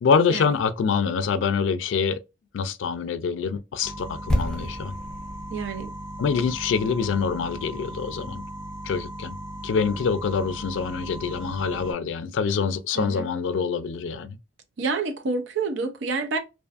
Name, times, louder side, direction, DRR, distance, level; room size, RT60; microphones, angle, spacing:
voice 1, 0.0-2.2 2.5-4.9 6.2-8.4 8.8-9.4 9.6-14.4, left 6 dB, 85° left, 0.3 m, -25 dB
sound 1, 3.8-11.9, equal, 60° right, 1.3 m, -37 dB
sound 2, 4.3-8.2 8.5-8.6, equal, 5° left, 0.5 m, -31 dB
voice 2, 5.5-5.9 13.0-13.3 14.8-16.4, right 4 dB, 80° right, 0.5 m, -28 dB
2.4 x 2.4 x 2.4 m
head